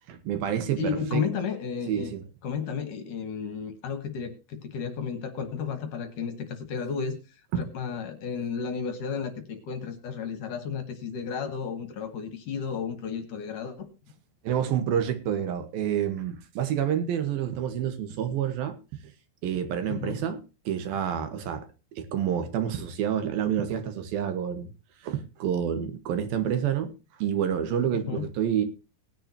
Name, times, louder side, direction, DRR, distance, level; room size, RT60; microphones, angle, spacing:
voice 1, 0.1-1.3 1.9-2.2 7.5-7.6 14.4-18.8 19.4-21.7 21.9-24.7 25.0-26.9 27.2-28.6, right 9 dB, 70° right, 3.0 m, -28 dB
voice 2, 0.8-2.1 2.4-7.2 7.5-13.9 19.9-20.2 27.9-28.2, left 6 dB, 60° left, 2.6 m, -33 dB
19.5 x 9.9 x 2.9 m
omnidirectional pair, 4.6 m